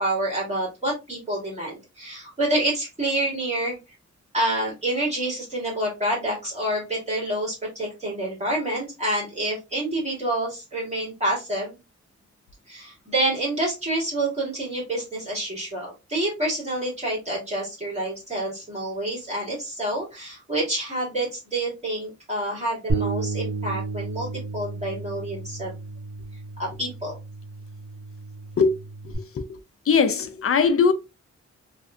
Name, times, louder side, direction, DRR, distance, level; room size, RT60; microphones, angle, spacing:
voice 1, 0.0-3.8 4.3-11.8 12.7-24.3 24.5-25.7 26.6-27.2, right 1 dB, 25° right, 2.1 m, -28 dB
Bass guitar, 22.9-29.1, right 3 dB, 55° right, 1.1 m, -32 dB
voice 2, 29.9-30.9, left 5 dB, 50° left, 0.5 m, -19 dB
3.5 x 2.6 x 2.4 m
wide cardioid pair, 120°, 29 cm